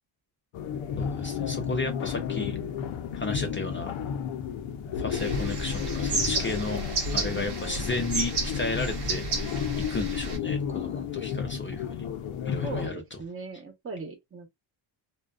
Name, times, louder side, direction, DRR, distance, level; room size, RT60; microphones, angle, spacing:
sound 1, 0.5-12.9, left 8 dB, 75° left, 0.6 m, -32 dB
voice 1, 1.0-2.6 3.1-4.0 5.0-6.8 7.1-12.0 12.5-13.2, left 2 dB, 25° left, 0.5 m, -33 dB
sound 2, 5.1-10.4, right 3 dB, 55° right, 0.9 m, -32 dB
voice 2, 12.6-14.5, right 3 dB, 25° right, 0.9 m, -38 dB
2.4 x 2.2 x 2.3 m
cardioid pair, 115°, 49 cm